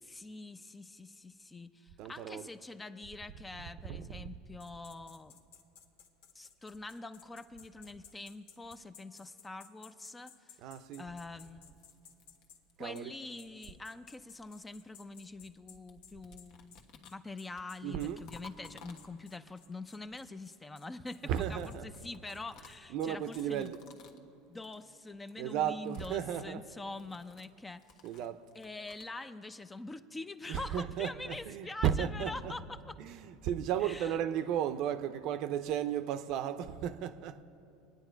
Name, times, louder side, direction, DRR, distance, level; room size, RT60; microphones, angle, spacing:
voice 1, 0.0-5.4 6.3-10.6 11.0-11.7 12.8-23.7 24.5-27.9 28.5-33.0 33.8-34.2, left 2 dB, 15° left, 0.5 m, -45 dB
voice 2, 2.0-2.5 3.9-4.3 10.6-11.1 12.8-13.2 17.8-18.3 21.2-21.9 22.9-23.8 25.4-26.6 28.0-28.5 30.5-32.5 33.0-37.4, right 9 dB, 60° right, 0.6 m, -34 dB
sound 1, 4.6-12.6 12.9-13.1 13.4-23.5, left 7 dB, 80° left, 1.0 m, -57 dB
sound 2, 11.5-13.1 14.0-15.6 15.9-19.5 20.9-24.3 24.5-24.9 25.1-25.4 25.7-29.1, left 5 dB, 60° left, 1.2 m, -59 dB
24.0 x 9.5 x 4.6 m
supercardioid pair, 110°, 0 cm